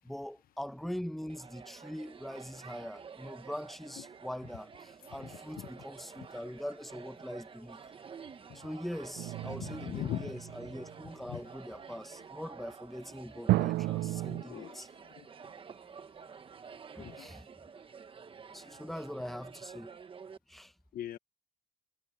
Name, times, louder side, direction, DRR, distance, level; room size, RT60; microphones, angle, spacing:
voice 1, 0.0-7.8 8.5-14.9 16.9-17.5 18.5-19.9 20.5-20.7, equal, ahead, 1.2 m, -42 dB
sound 1, 1.3-20.4, right 6 dB, 30° right, 1.3 m, -50 dB
sound 2, 9.2-10.9 13.5-14.4, right 16 dB, 75° right, 0.5 m, -32 dB
voice 2, 9.6-10.3 11.3-11.4 14.4-14.8 15.2-15.3 17.0-17.3 20.9-21.2, left 12 dB, 60° left, 1.1 m, -39 dB
cardioid pair, 110°, 17 cm